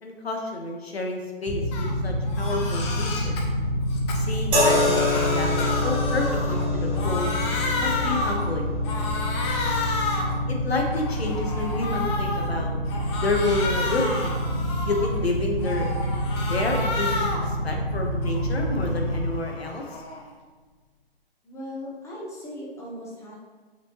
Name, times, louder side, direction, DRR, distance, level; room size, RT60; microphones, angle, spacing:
voice 1, 0.0-3.4 4.1-7.3 7.8-8.7 10.5-12.7 13.2-14.3 14.8-15.9 16.5-19.8, left 2 dB, 80° left, 2 dB, 1.5 m, -29 dB
sound 1, 1.5-19.2, equal, 45° right, 1.7 m, -27 dB
Crying sobbing, 1.7-1.9 2.3-3.4 3.9-6.7 6.9-8.5 8.9-10.4 10.8-12.5 12.9-15.2 15.6-17.5 17.9-20.3, left 3 dB, 25° left, 0.9 m, -31 dB
sound 2, 4.5-17.9 18.8-19.0, left 2 dB, 15° right, 1.6 m, -31 dB
voice 2, 21.4-23.4, left 1 dB, 10° left, -5 dB, 1.3 m, -38 dB
6.7 x 5.9 x 3.1 m, 1.4 s
figure-of-eight pair, 135°, 31 cm